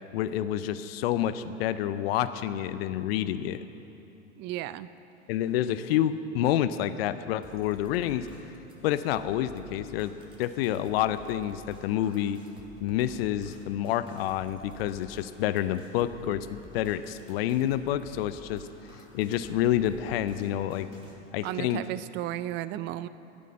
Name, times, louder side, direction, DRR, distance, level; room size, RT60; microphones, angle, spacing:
voice 1, 0.1-3.6 5.3-8.3 8.8-10.1 10.4-12.4 12.8-18.7 19.1-20.9 21.3-21.8, left 11 dB, 55° left, 13 dB, 0.6 m, -28 dB
voice 2, 4.4-4.9 21.4-23.1, right 13 dB, 30° right, 15 dB, 0.4 m, -34 dB
sound 1, 7.4-21.1, right 1 dB, 15° right, 2.6 m, -52 dB
12.5 x 12.0 x 5.5 m, 2.8 s
hypercardioid pair, 90°, 35 cm